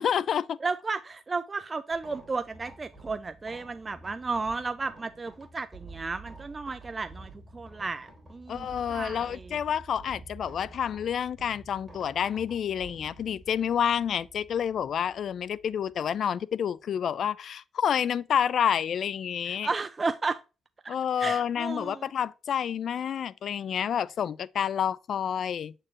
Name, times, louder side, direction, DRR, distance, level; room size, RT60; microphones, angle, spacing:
voice 1, 0.0-0.6 8.5-19.7 20.9-25.7, left 8 dB, 60° left, 0.3 m, -29 dB
voice 2, 0.6-9.6 19.5-20.4 20.8-22.1, right 4 dB, 30° right, 0.3 m, -33 dB
sound 1, 1.9-16.2, right 2 dB, 10° right, 2.9 m, -49 dB
7.3 x 4.5 x 2.9 m
cardioid pair, 90°, 0 cm